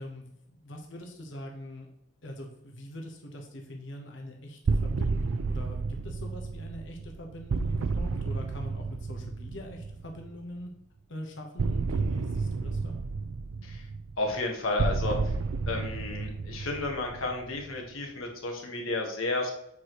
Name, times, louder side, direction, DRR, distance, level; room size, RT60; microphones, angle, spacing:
voice 1, 0.0-1.9 2.2-10.7 11.1-13.0, left 1 dB, 65° left, 1 dB, 1.1 m, -43 dB
sound 1, 4.7-10.4 11.6-17.9, right 4 dB, 85° right, 0.5 m, -31 dB
voice 2, 14.2-15.3 15.7-19.5, left 2 dB, 85° left, 2 dB, 1.4 m, -32 dB
7.1 x 4.8 x 3.0 m, 0.78 s
head